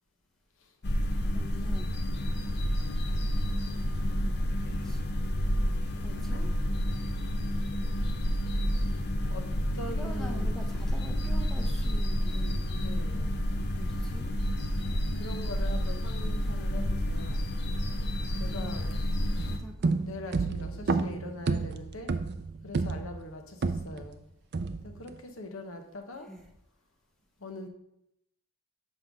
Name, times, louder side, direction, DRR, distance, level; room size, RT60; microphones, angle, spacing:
sound 1, 0.8-19.6, equal, 50° left, 0.7 m, -29 dB
voice 1, 1.3-1.9 4.8-5.0 6.0-6.5 10.0-12.8 13.7-14.3 19.4-19.9 26.3-26.4, equal, ahead, 1 dB, 0.6 m, -45 dB
voice 2, 9.7-11.3 12.6-13.5 15.2-17.4 18.4-19.0 19.8-22.2 22.6-24.2 24.8-26.3 27.4-27.7, left 1 dB, 75° left, 5 dB, 1.0 m, -42 dB
sound 2, 19.4-24.1 24.5-25.1, right 4 dB, 50° right, 0.4 m, -31 dB
7.6 x 5.5 x 3.6 m, 0.81 s
head